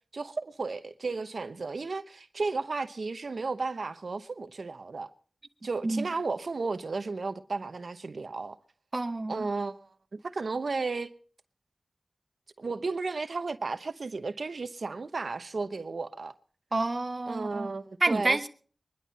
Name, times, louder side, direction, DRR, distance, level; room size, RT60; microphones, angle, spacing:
voice 1, 0.1-5.1 5.6-8.6 9.3-11.1 12.6-16.3 17.3-18.5, right 3 dB, 70° right, 0.9 m, -34 dB
voice 2, 8.9-9.5 16.7-17.7 18.0-18.5, right 2 dB, 45° right, 1.3 m, -28 dB
23.0 x 11.0 x 4.1 m
cardioid pair, 45°, 0 cm